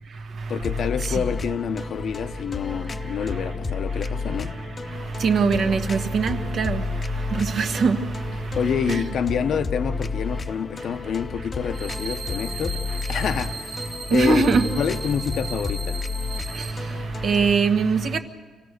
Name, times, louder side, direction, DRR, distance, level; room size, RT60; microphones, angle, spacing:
voice 1, 0.5-4.6 8.5-14.4 14.8-16.0, left 7 dB, 65° left, 0.8 m, -28 dB
sound 1, 0.6-17.5, left 4 dB, 30° left, 0.8 m, -32 dB
voice 2, 5.2-8.1 8.4-8.5 8.9-9.0 14.1-14.7 16.5-18.2, right 4 dB, 60° right, 1.4 m, -22 dB
sound 2, 11.7-16.7, right 4 dB, 25° right, 2.1 m, -37 dB
25.5 x 16.5 x 6.6 m
cardioid pair, 90°, 0 cm